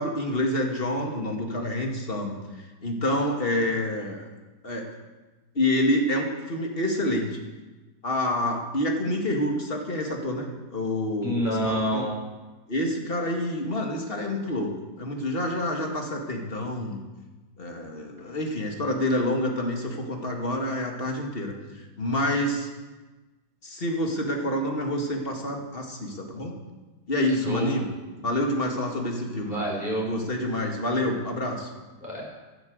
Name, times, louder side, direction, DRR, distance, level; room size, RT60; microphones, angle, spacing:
voice 1, 0.0-2.4 2.8-4.2 4.6-4.9 5.5-7.4 8.0-12.1 12.7-14.7 15.0-17.1 17.6-21.5 22.0-22.7 23.6-26.6 27.1-27.9 28.1-29.6 30.0-31.7, left 1 dB, 30° left, 1 dB, 2.5 m, -27 dB
voice 2, 11.2-12.2 27.4-27.7 29.4-30.1 32.0-32.2, equal, 25° right, -3 dB, 5.1 m, -27 dB
14.5 x 12.0 x 8.1 m, 1.2 s
omnidirectional pair, 2.0 m